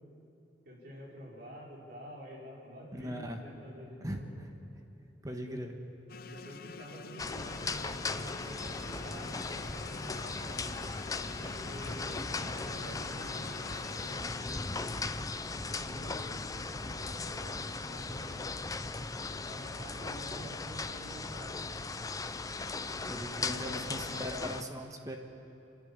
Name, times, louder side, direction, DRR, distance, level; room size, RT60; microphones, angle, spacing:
voice 1, 0.6-4.4 5.5-5.6 6.3-10.7 11.4-13.6 13.9-15.1 15.5-18.5 19.3-21.6 22.9-24.3, equal, 55° right, -4 dB, 5.0 m, -48 dB
voice 2, 2.9-3.4 4.0-4.5 5.2-5.7 23.1-25.2, equal, 20° right, 4 dB, 1.3 m, -39 dB
Res Highdrone, 6.1-14.2, left 4 dB, 50° left, 0.7 m, -48 dB
sound 1, 7.2-24.6, left 3 dB, 20° left, 0.5 m, -38 dB
27.5 x 11.0 x 8.8 m, 3.0 s
head